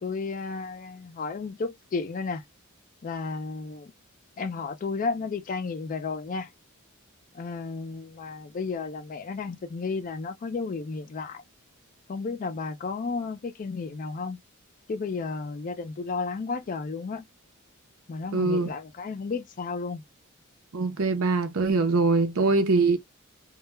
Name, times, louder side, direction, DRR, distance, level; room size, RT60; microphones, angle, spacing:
voice 1, 0.0-2.4 3.0-3.9 4.4-6.5 7.3-11.4 12.1-14.4 14.9-17.3 18.1-20.0, left 4 dB, 40° left, 0.4 m, -33 dB
voice 2, 18.3-18.7 20.7-23.0, right 3 dB, 70° right, 0.6 m, -23 dB
2.2 x 2.1 x 3.1 m
head